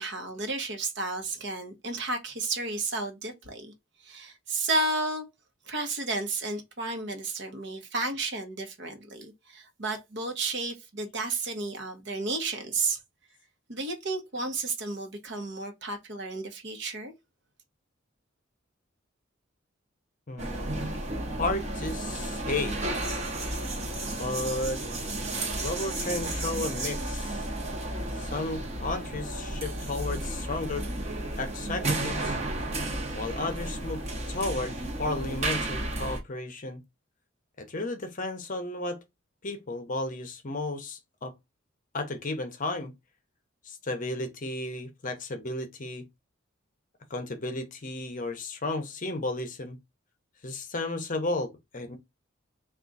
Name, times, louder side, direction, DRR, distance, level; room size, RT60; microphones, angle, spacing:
voice 1, 0.0-3.7 4.0-5.2 5.6-13.0 13.7-17.1, right 3 dB, 55° right, 0.9 m, -32 dB
voice 2, 20.3-21.0 21.4-22.8 24.1-24.8 25.6-27.4 28.1-30.9 31.3-32.4 33.1-34.0 34.3-36.8 37.6-39.0 39.4-41.3 41.9-42.9 43.7-46.0 47.1-49.8 50.4-52.0, left 2 dB, 40° left, 0.7 m, -33 dB
sound 1, 20.4-36.2, right 1 dB, 35° right, 0.9 m, -33 dB
3.6 x 2.4 x 3.9 m
head